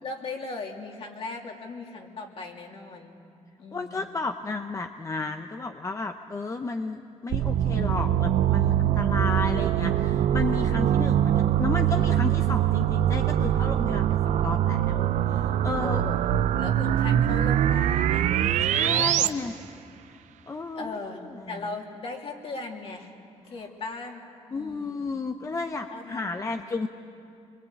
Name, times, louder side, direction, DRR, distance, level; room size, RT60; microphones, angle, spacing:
voice 1, 0.0-3.2 3.6-4.1 15.8-18.3 18.6-19.6 20.7-23.1 23.4-24.2 24.5-25.2 25.9-26.9, left 3 dB, 50° left, 1 dB, 3.2 m, -38 dB
voice 2, 3.7-16.0 18.6-19.5 20.5-21.6 24.5-26.9, left 3 dB, 25° left, 6 dB, 0.9 m, -33 dB
sound 1, 7.3-19.3, right 11 dB, 80° right, 0.7 m, -23 dB
27.0 x 23.0 x 8.6 m, 2.6 s
cardioid pair, 110°, 12 cm